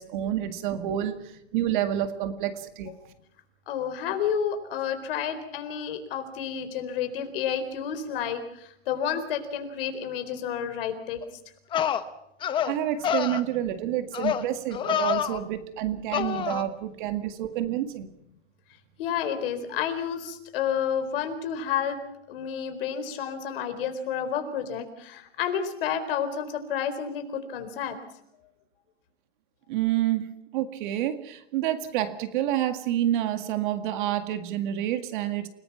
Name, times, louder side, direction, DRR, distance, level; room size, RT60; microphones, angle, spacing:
voice 1, 0.0-2.9 12.6-18.1 29.7-35.5, right 12 dB, 40° right, 9 dB, 2.0 m, -28 dB
voice 2, 3.7-11.2 11.8-11.9 19.0-22.0 22.3-28.0, left 8 dB, 50° left, 8 dB, 4.2 m, -30 dB
sound 1, 11.2-11.3 11.7-12.0 12.4-12.7 13.0-13.4 14.1-14.4 14.7-15.4 16.1-16.6, left 9 dB, 15° left, 0.9 m, -27 dB
29.5 x 19.5 x 5.9 m, 0.78 s
hypercardioid pair, 155°, 36 cm